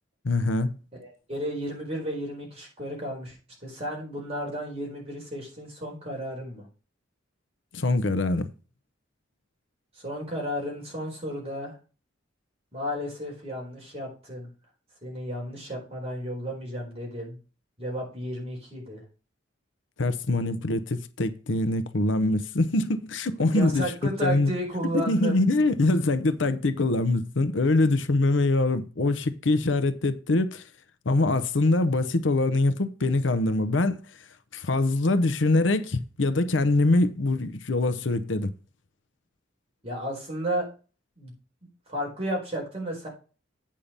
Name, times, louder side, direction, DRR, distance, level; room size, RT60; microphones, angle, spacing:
voice 1, 0.2-0.8 7.7-8.5 20.0-23.9 24.2-24.5 24.9-30.6 31.1-34.0 34.5-38.5, left 2 dB, 70° left, 0.8 m, -24 dB
voice 2, 1.0-3.4 3.6-6.7 10.0-11.8 12.7-14.5 15.0-17.4 17.8-19.0 23.4-25.4 39.8-40.7 41.2-41.3 41.9-43.1, equal, 35° right, 4.5 m, -33 dB
8.6 x 5.7 x 5.2 m
head